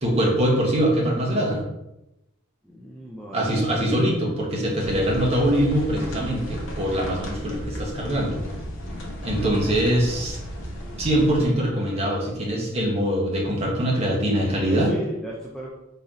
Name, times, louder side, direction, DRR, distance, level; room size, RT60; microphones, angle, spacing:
voice 1, 0.0-1.6 3.3-8.4 9.2-10.4 11.0-14.9, right 1 dB, 30° right, -3 dB, 0.9 m, -23 dB
voice 2, 2.6-3.7 14.7-15.7, equal, ahead, -4 dB, 0.3 m, -35 dB
sound 1, 4.8-11.5, equal, 60° left, 0.8 m, -34 dB
4.0 x 3.0 x 2.5 m, 0.88 s
head